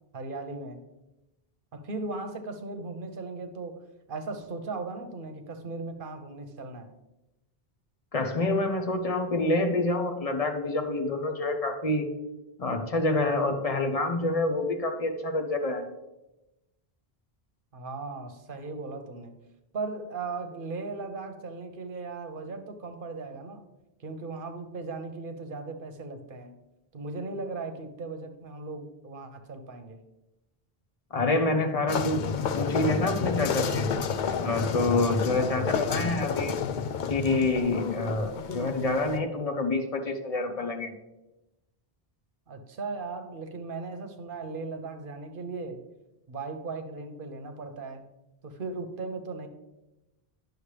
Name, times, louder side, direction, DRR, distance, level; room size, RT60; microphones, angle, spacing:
voice 1, 0.1-0.8 1.7-3.8 4.1-6.9 17.7-19.3 19.7-23.6 24.0-26.6 26.9-30.0 42.5-45.8 46.3-48.0 48.4-49.5, right 3 dB, 60° right, 7 dB, 1.0 m, -37 dB
voice 2, 8.1-12.0 12.6-15.8 31.1-32.2 32.5-33.9 34.4-36.6 37.1-40.9, left 2 dB, 40° left, 5 dB, 0.9 m, -27 dB
sound 1, 31.9-39.2, left 6 dB, 60° left, 0.6 m, -30 dB
10.0 x 6.4 x 3.3 m, 0.98 s
omnidirectional pair, 1.0 m